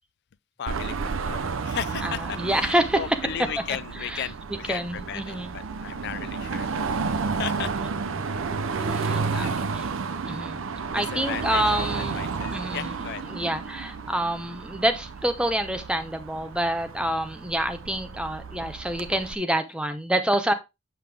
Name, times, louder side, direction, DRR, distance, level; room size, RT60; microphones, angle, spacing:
voice 1, 0.6-6.8 7.3-7.7 8.6-9.7 10.2-10.4 10.9-13.2, left 9 dB, 50° left, 0.4 m, -36 dB
Car passing by / Traffic noise roadway noise / Engine, 0.7-19.4, right 4 dB, 65° right, 0.5 m, -32 dB
voice 2, 2.0-3.2 4.0-4.3 4.7-5.5 8.9-9.9 10.2-10.6 10.9-12.2 12.5-13.0 13.3-20.5, right 1 dB, 5° right, 0.6 m, -27 dB
7.8 x 5.3 x 3.4 m
head